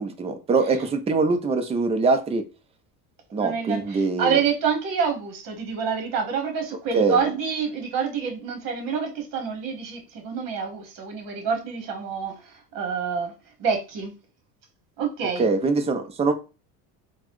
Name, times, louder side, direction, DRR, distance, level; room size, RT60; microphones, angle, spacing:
voice 1, 0.0-2.4 3.3-4.4 6.9-7.2 15.4-16.3, right 4 dB, 15° right, 0.5 m, -23 dB
voice 2, 3.3-13.3 13.6-14.1 15.0-15.6, right 6 dB, 45° right, 1.3 m, -27 dB
4.0 x 2.2 x 3.0 m
supercardioid pair, 115°, 45 cm